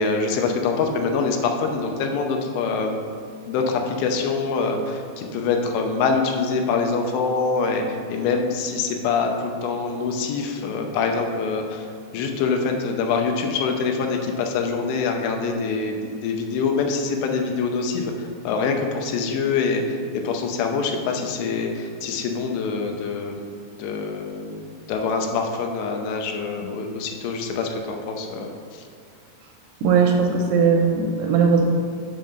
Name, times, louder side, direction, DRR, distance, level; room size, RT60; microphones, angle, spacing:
voice 1, 0.0-2.9 3.5-11.9 12.1-23.5 23.8-28.8, left 4 dB, 85° left, 3 dB, 3.0 m, -25 dB
voice 2, 29.8-31.6, right 5 dB, 80° right, 1 dB, 2.4 m, -18 dB
7.2 x 3.7 x 6.4 m, 2.3 s
omnidirectional pair, 5.0 m